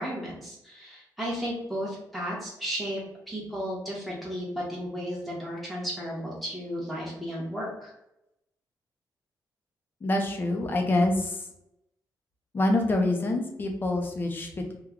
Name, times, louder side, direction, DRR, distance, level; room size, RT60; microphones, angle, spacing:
voice 1, 0.0-3.0 3.3-7.9, equal, ahead, -5 dB, 0.9 m, -34 dB
voice 2, 10.0-11.5 12.5-14.8, left 2 dB, 25° left, 3 dB, 0.5 m, -26 dB
3.1 x 2.2 x 3.6 m, 0.85 s
wide cardioid pair, 170°, 7 cm